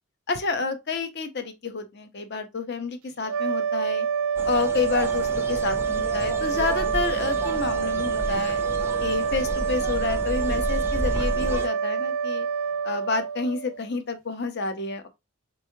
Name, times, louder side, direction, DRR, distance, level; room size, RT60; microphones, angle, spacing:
voice 1, 0.3-4.1 4.4-8.6 9.0-12.5 12.8-15.1, left 4 dB, 50° left, 0.7 m, -29 dB
sound 1, 3.2-13.9, right 6 dB, 80° right, 0.7 m, -27 dB
sound 2, 4.4-11.7, right 1 dB, 10° right, 0.5 m, -32 dB
4.3 x 3.1 x 2.7 m
head